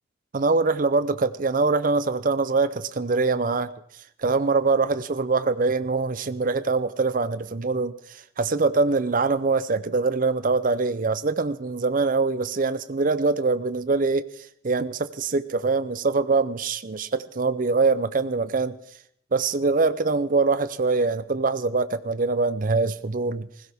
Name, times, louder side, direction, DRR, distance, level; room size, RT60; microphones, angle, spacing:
voice 1, 0.3-3.7 4.2-7.9 8.4-14.3 14.6-18.8 19.3-23.5, right 3 dB, 40° right, 13 dB, 0.5 m, -23 dB
20.0 x 16.0 x 3.5 m, 0.70 s
head